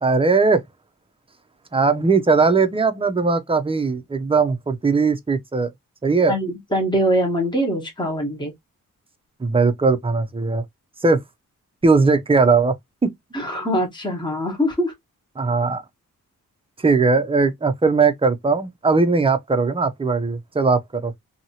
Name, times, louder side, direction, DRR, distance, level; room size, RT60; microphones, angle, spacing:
voice 1, 0.0-0.6 1.7-5.7 6.0-6.4 9.4-10.6 11.0-11.2 11.8-12.7 13.0-13.1 15.4-15.8 16.8-21.2, right 4 dB, 15° right, 0.5 m, -19 dB
voice 2, 6.3-8.5 13.3-14.9, equal, 15° left, 1.2 m, -23 dB
2.8 x 2.8 x 2.7 m
wide cardioid pair, 130°, 33 cm